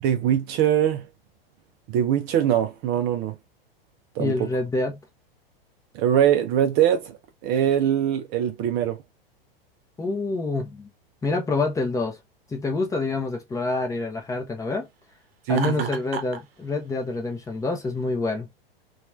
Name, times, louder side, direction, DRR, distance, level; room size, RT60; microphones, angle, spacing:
voice 1, 0.0-1.1 1.9-3.4 4.2-4.3 5.9-7.2 7.4-9.0 15.5-15.9, right 10 dB, 35° right, 0.4 m, -22 dB
voice 2, 4.2-5.0 10.0-10.9 11.2-12.2 12.5-14.9 15.5-18.5, left 3 dB, 10° left, 0.6 m, -27 dB
Laughter, 15.5-16.4, right 5 dB, 75° right, 0.7 m, -32 dB
2.9 x 2.3 x 2.3 m
hypercardioid pair, 100°, 30 cm